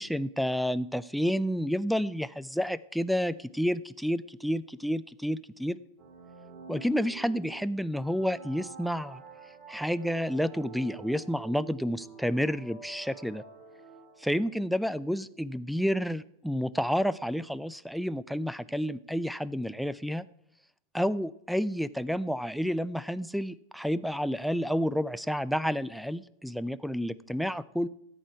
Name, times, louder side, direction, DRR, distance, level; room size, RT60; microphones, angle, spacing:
voice 1, 0.0-5.8 6.7-9.2 9.7-13.4 14.2-20.3 20.9-27.9, equal, ahead, 17 dB, 0.4 m, -30 dB
sound 1, 6.0-14.6, right 5 dB, 30° right, 2.2 m, -48 dB
13.5 x 8.5 x 4.6 m, 0.77 s
figure-of-eight pair, 90°, 0 cm